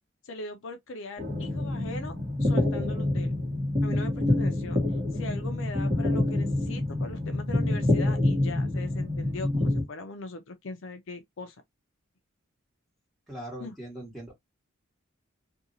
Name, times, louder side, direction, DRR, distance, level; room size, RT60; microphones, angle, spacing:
voice 1, 0.2-2.1 2.4-3.4 3.8-4.8 5.1-11.6 13.6-13.8, left 2 dB, 65° left, 0.5 m, -40 dB
sound 1, 1.2-9.8, left 1 dB, 30° right, 1.4 m, -27 dB
voice 2, 13.3-14.3, right 1 dB, ahead, 1.6 m, -40 dB
2.7 x 2.7 x 2.6 m
head